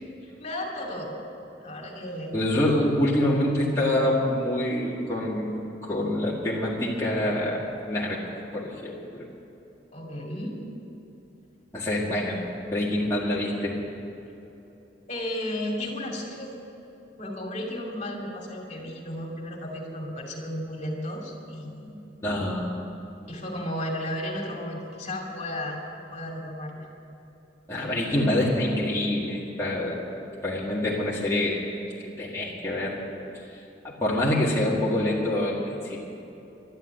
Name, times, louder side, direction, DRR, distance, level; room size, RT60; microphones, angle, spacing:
voice 1, 0.4-1.1 1.6-2.4 9.9-10.6 15.1-16.5 17.2-22.0 23.3-25.8 26.1-26.9, left 1 dB, 40° left, -1 dB, 2.7 m, -34 dB
voice 2, 2.3-7.6 7.9-8.2 8.5-9.2 11.7-12.4 12.7-13.8 22.2-22.7 27.7-31.6 32.0-33.0 33.8-36.0, left 1 dB, 15° left, -7 dB, 1.9 m, -26 dB
12.0 x 10.5 x 10.0 m, 3.0 s
head